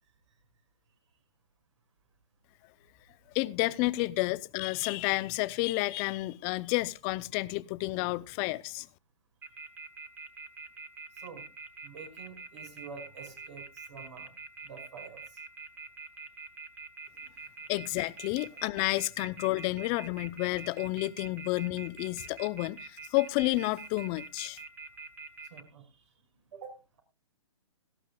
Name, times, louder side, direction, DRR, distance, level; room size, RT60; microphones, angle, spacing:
voice 1, 3.3-8.9 17.7-24.6, left 21 dB, 30° left, 0.6 m, -30 dB
sound 1, 9.4-25.6, right 4 dB, 10° right, 1.2 m, -44 dB
voice 2, 11.1-11.5 11.8-14.3 14.6-15.4 17.1-17.3 25.5-26.1 26.5-27.0, right 5 dB, 60° right, 5.3 m, -48 dB
17.5 x 14.0 x 2.3 m
hypercardioid pair, 135°, 17 cm